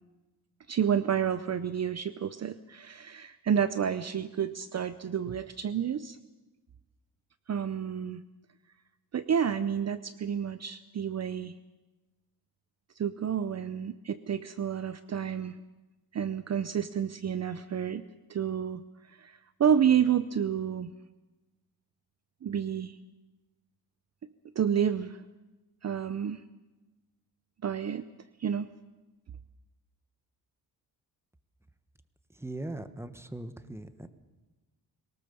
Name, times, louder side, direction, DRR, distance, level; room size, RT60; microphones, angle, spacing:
voice 1, 0.7-6.2 7.5-8.2 9.1-11.5 13.0-15.6 16.1-18.8 19.2-20.9 22.4-23.0 24.6-25.2 25.8-26.4 27.6-28.0 28.4-28.7, right 8 dB, 40° right, 13 dB, 0.7 m, -29 dB
voice 2, 32.3-34.1, right 1 dB, 5° right, 11 dB, 1.2 m, -40 dB
22.5 x 19.0 x 6.9 m, 1.1 s
wide cardioid pair, 125°, 39 cm